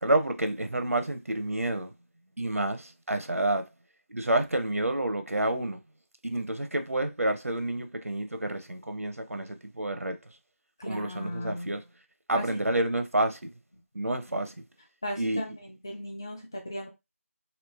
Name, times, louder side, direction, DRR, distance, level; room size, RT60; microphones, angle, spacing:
voice 1, 0.0-1.9 2.4-3.7 4.1-5.8 6.2-10.2 10.9-11.8 12.3-13.5 13.9-14.6 15.2-15.4, right 1 dB, 75° right, 0.6 m, -29 dB
voice 2, 10.8-11.7 12.4-12.6 14.3-14.5 15.0-16.9, left 1 dB, 15° left, 0.4 m, -37 dB
3.2 x 3.0 x 3.1 m
figure-of-eight pair, 165°, 8 cm